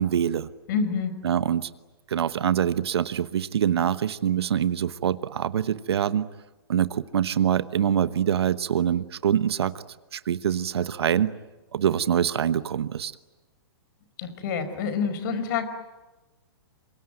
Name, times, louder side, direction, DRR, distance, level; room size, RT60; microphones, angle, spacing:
voice 1, 0.0-0.5 1.2-1.7 2.1-6.3 6.7-9.7 10.1-11.3 11.7-13.1, right 9 dB, 80° right, 14 dB, 1.1 m, -24 dB
voice 2, 0.7-1.1 14.2-15.7, left 6 dB, 50° left, 11 dB, 4.8 m, -27 dB
27.0 x 23.5 x 9.1 m, 1.1 s
hypercardioid pair, 135°, 13 cm